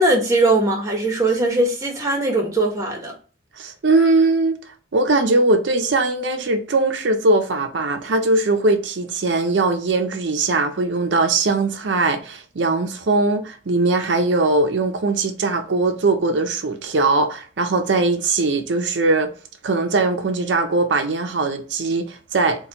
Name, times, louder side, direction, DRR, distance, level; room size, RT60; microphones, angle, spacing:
voice 1, 0.0-3.1, right 2 dB, 20° right, 1.1 m, -20 dB
voice 2, 3.6-4.6 4.9-19.3 19.6-22.7, right 3 dB, 80° right, 0.5 m, -20 dB
4.1 x 2.3 x 2.8 m
head